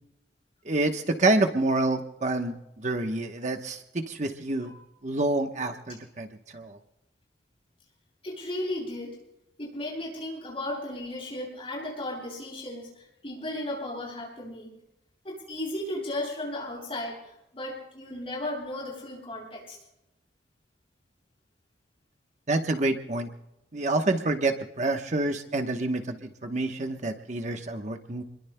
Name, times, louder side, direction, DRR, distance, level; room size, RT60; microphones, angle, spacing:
voice 1, 0.6-4.7 5.0-6.3 6.5-6.8 22.5-23.3 23.7-28.2, right 2 dB, 40° right, 5 dB, 1.1 m, -27 dB
voice 2, 8.2-9.2 9.6-14.7 15.2-19.8, left 1 dB, 35° left, -4 dB, 7.9 m, -35 dB
29.0 x 22.0 x 2.2 m, 0.89 s
head